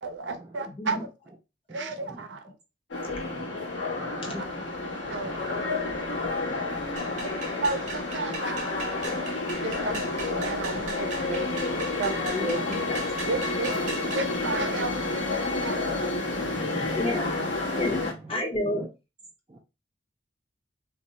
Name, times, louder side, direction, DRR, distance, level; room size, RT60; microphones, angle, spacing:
voice 1, 0.0-1.1 1.7-2.5 4.3-4.4 5.1-5.4 7.6-9.3 9.6-11.6 12.0-12.3 13.3-15.8, right 3 dB, 75° right, 6 dB, 0.6 m, -33 dB
sound 1, 2.9-18.1, left 2 dB, 90° left, 1.1 m, -30 dB
voice 2, 3.1-3.6 3.9-4.6 5.1-5.5 6.1-6.9 11.7-11.8 16.4-17.5 17.9-18.1 18.7-18.9 19.5-19.6, right 2 dB, 20° right, -1 dB, 0.4 m, -42 dB
sound 2, 7.0-14.3, right 4 dB, 40° right, 0.8 m, -39 dB
voice 3, 12.3-13.0 17.0-17.3 17.8-18.9, left 1 dB, 30° left, 2 dB, 0.7 m, -30 dB
2.6 x 2.1 x 3.9 m, 0.28 s
head